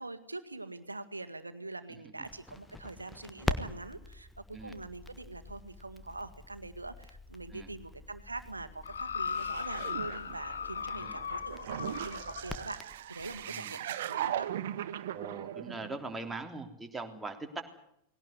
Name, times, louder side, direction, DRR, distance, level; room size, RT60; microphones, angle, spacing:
voice 1, 0.0-14.5, right 2 dB, 80° right, 11 dB, 1.8 m, -43 dB
Crackle, 2.2-13.4, left 2 dB, 5° left, 1.6 m, -44 dB
sound 1, 8.8-12.5 13.3-13.4, left 7 dB, 70° left, 0.9 m, -37 dB
sound 2, 9.3-16.3, right 11 dB, 55° right, 1.2 m, -39 dB
voice 2, 13.5-13.8 15.1-17.6, right 3 dB, 10° right, 3 dB, 3.4 m, -41 dB
21.0 x 18.0 x 9.6 m, 0.75 s
figure-of-eight pair, 90°, 0 cm